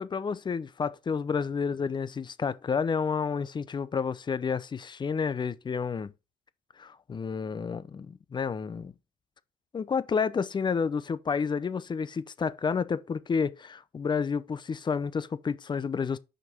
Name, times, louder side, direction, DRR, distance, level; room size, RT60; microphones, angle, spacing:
voice 1, 0.0-6.1 6.8-8.9 9.7-16.2, left 5 dB, 25° left, 0.7 m, -30 dB
6.2 x 5.3 x 5.9 m
cardioid pair, 110°, 17 cm